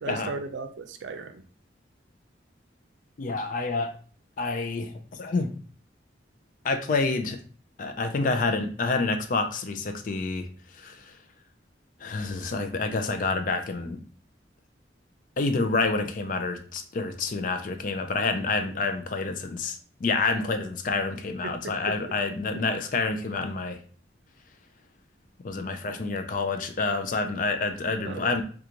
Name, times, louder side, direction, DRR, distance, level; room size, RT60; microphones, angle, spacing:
voice 1, 0.0-1.4 21.4-21.9 28.0-28.4, right 3 dB, 85° right, 7 dB, 0.4 m, -36 dB
voice 2, 3.2-4.0 4.4-5.5 6.6-7.4 7.8-10.5 10.7-11.1 12.0-14.0 15.4-23.8 25.4-28.4, left 3 dB, 45° left, 7 dB, 0.4 m, -28 dB
3.8 x 2.3 x 2.9 m, 0.43 s
head